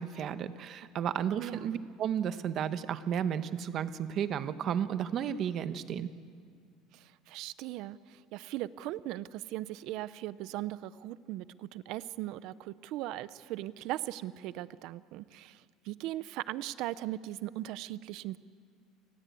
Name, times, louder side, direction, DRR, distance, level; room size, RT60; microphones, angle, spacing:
voice 1, 0.0-6.1, right 8 dB, 35° right, 12 dB, 1.0 m, -33 dB
voice 2, 1.4-1.7 6.9-18.4, right 15 dB, 55° right, 16 dB, 0.7 m, -39 dB
29.5 x 19.5 x 8.4 m, 2.1 s
cardioid pair, 170°, 0 cm